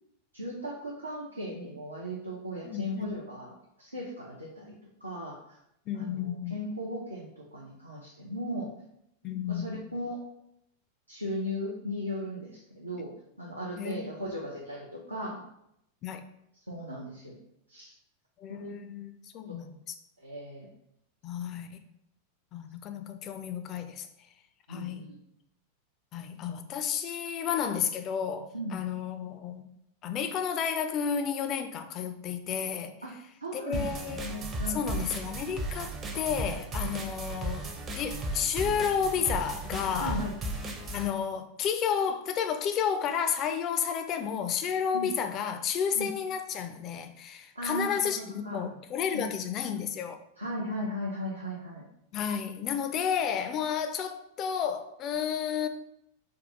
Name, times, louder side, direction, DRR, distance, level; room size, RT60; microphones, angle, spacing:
voice 1, 0.3-4.7 5.0-5.6 5.9-8.7 9.5-10.2 11.1-13.1 13.4-15.4 16.7-17.4 17.7-17.9 18.5-18.7 19.5-19.6 20.2-20.7 24.7-25.2 28.5-28.8 33.0-33.1 33.4-35.0 40.0-40.3 44.9-45.1 45.9-46.1 47.6-48.7 49.1-49.3 50.4-51.9, equal, 85° right, -3 dB, 0.5 m, -37 dB
voice 2, 2.6-3.1 5.9-6.5 9.2-9.8 13.8-14.3 16.0-16.2 18.4-19.9 21.2-21.8 22.5-24.1 24.7-25.2 26.1-29.7 30.0-33.0 33.5-34.3 34.7-37.7 38.0-40.2 40.9-50.2 52.1-55.7, left 7 dB, 35° left, 8 dB, 0.3 m, -32 dB
sound 1, 33.7-41.1, right 2 dB, 25° right, 0.5 m, -35 dB
3.6 x 2.3 x 3.8 m, 0.77 s
figure-of-eight pair, 90°, 0 cm